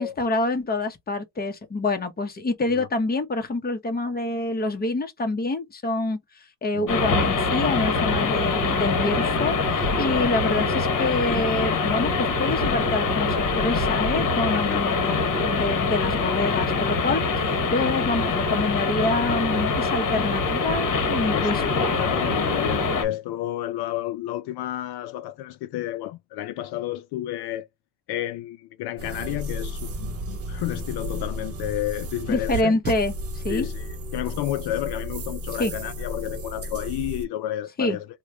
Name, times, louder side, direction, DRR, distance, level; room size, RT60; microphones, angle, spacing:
voice 1, 0.0-6.2 6.6-21.6 32.3-33.7 35.6-35.7 37.8-38.0, left 2 dB, 25° left, 0.9 m, -27 dB
sound 1, 6.9-23.1, left 4 dB, 50° left, 1.3 m, -24 dB
voice 2, 21.3-27.7 28.1-32.7 33.5-38.1, left 14 dB, 70° left, 0.5 m, -31 dB
sound 2, 29.0-37.2, equal, 35° right, 0.8 m, -33 dB
2.9 x 2.2 x 3.6 m
cardioid pair, 100°, 41 cm